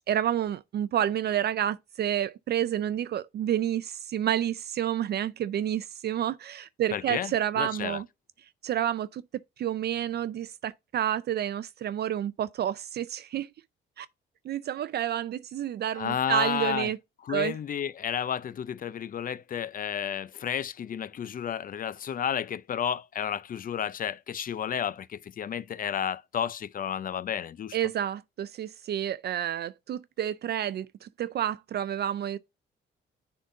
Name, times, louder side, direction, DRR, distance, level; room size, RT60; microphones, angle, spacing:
voice 1, 0.1-8.1 8.6-9.2 9.6-13.5 14.0-14.1 14.4-17.0 17.3-17.6 27.7-32.4, right 11 dB, 55° right, 0.4 m, -29 dB
voice 2, 6.9-8.0 15.9-16.9 17.3-27.8, left 8 dB, 45° left, 0.6 m, -32 dB
10.0 x 3.8 x 2.6 m
cardioid pair, 90°, 20 cm